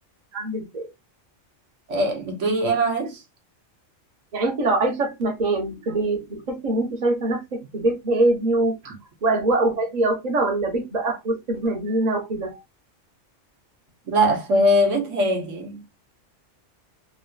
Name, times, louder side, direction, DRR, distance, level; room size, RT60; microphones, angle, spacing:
voice 1, 0.3-0.9 4.3-8.9 9.2-12.6, right 2 dB, 35° right, 1.0 m, -23 dB
voice 2, 1.9-3.2 14.1-15.8, equal, 80° right, 1.3 m, -21 dB
3.1 x 2.9 x 2.2 m
omnidirectional pair, 1.3 m